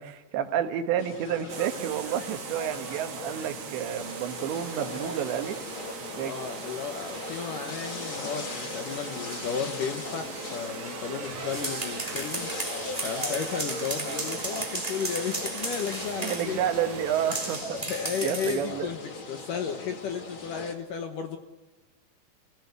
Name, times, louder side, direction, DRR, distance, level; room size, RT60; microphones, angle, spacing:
voice 1, 0.0-5.6 6.1-6.3 16.2-17.8 18.2-18.9, right 9 dB, 80° right, 7 dB, 3.6 m, -30 dB
sound 1, 1.0-20.7, left 3 dB, 35° left, 2.5 m, -39 dB
sound 2, 1.5-17.6, right 8 dB, 60° right, 2.2 m, -41 dB
voice 2, 6.1-12.5 13.0-16.6 17.9-19.0 19.3-21.4, left 7 dB, 65° left, 6 dB, 2.2 m, -34 dB
sound 3, 11.3-16.5 17.3-18.7, right 2 dB, 10° right, 2.5 m, -35 dB
30.0 x 17.5 x 8.2 m, 1.1 s
omnidirectional pair, 5.2 m